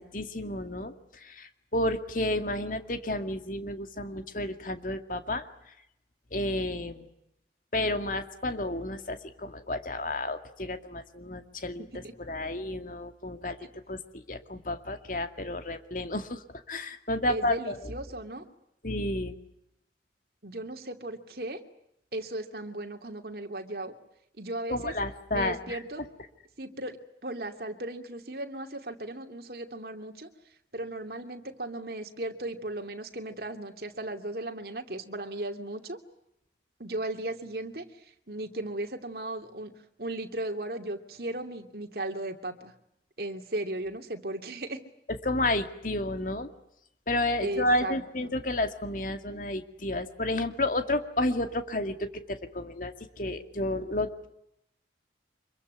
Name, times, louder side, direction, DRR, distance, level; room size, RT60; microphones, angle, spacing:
voice 1, 0.0-5.5 6.3-7.1 7.7-13.6 13.9-16.4 16.7-17.9 18.8-19.3 24.7-25.8 45.1-46.5 47.1-54.3, left 1 dB, 50° left, 8 dB, 2.2 m, -31 dB
voice 2, 11.8-12.1 17.3-18.4 20.4-21.6 22.1-23.9 24.4-24.9 25.3-26.1 26.6-30.3 30.7-36.0 36.8-37.8 38.3-39.7 40.0-42.7 43.2-44.8 47.4-48.0 48.2-48.3, right 1 dB, 55° right, 4 dB, 2.7 m, -36 dB
26.0 x 23.0 x 9.4 m, 0.80 s
head